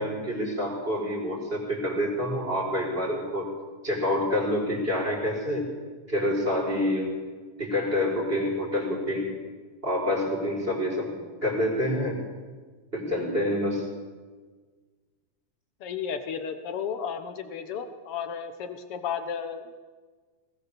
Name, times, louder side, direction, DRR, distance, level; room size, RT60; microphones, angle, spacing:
voice 1, 0.0-3.5 3.8-5.7 6.1-7.1 7.6-9.3 9.8-11.1 11.4-12.2 12.9-13.9, left 1 dB, 15° right, -1 dB, 5.0 m, -27 dB
voice 2, 15.8-19.8, left 7 dB, 80° left, 8 dB, 1.2 m, -33 dB
20.5 x 20.0 x 6.9 m, 1.4 s
omnidirectional pair, 4.3 m